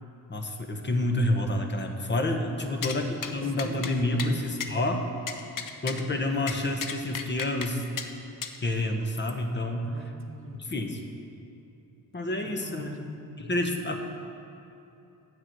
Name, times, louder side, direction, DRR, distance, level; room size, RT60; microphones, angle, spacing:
voice 1, 0.3-5.1 5.8-7.8 8.6-9.9 10.6-11.0 12.1-13.0 13.4-14.0, left 1 dB, 30° left, 4 dB, 1.1 m, -28 dB
voice 2, 2.6-4.6 9.8-10.7 12.4-13.1, right 3 dB, 35° right, 4 dB, 0.9 m, -45 dB
sound 1, 2.8-3.0 3.2-3.3 3.6-3.9 4.2-4.3 4.6-4.7 5.3-6.0 6.5-7.7 8.0-8.1 8.4-8.6, left 7 dB, 55° left, 0.8 m, -34 dB
7.9 x 7.4 x 6.1 m, 2.9 s
cardioid pair, 75°, 39 cm